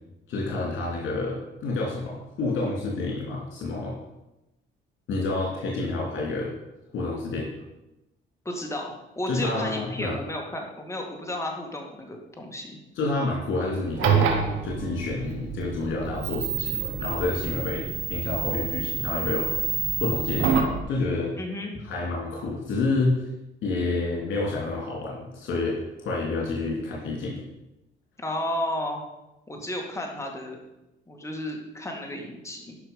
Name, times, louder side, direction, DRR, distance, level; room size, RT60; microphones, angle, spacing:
voice 1, 0.3-4.0 5.1-6.6 6.9-7.6 9.3-10.2 12.9-14.4 14.6-21.3 21.8-23.2 23.6-27.4, left 3 dB, 70° left, -3 dB, 3.1 m, -29 dB
voice 2, 8.4-12.8 21.3-21.7 28.2-29.0 29.5-30.6 31.1-32.8, left 1 dB, 15° left, 1 dB, 2.4 m, -33 dB
sound 1, 13.9-20.8, right 6 dB, 85° right, 1.5 m, -27 dB
12.0 x 5.7 x 5.5 m, 0.94 s
cardioid pair, 90°, 20 cm